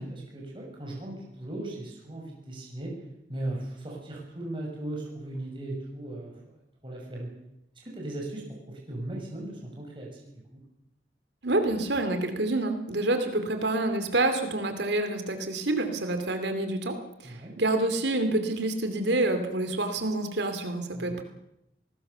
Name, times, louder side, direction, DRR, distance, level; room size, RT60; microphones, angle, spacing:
voice 1, 0.0-2.9 3.3-6.3 6.8-7.3 7.8-10.6 17.2-17.5 20.9-21.2, right 1 dB, 30° right, -2 dB, 7.1 m, -37 dB
voice 2, 11.4-17.0 17.2-21.2, right 2 dB, 75° right, 7 dB, 2.8 m, -27 dB
28.0 x 19.5 x 6.9 m, 0.82 s
head